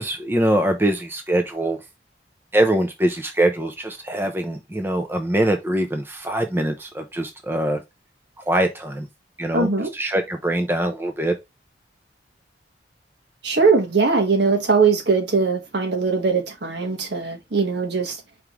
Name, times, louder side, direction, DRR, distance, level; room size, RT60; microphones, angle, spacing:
voice 1, 0.0-1.8 2.5-7.8 8.4-9.1 9.4-11.4, right 1 dB, 10° right, 0.5 m, -23 dB
voice 2, 9.5-9.9 13.4-18.2, right 4 dB, 70° right, 1.3 m, -20 dB
4.8 x 3.7 x 3.0 m
head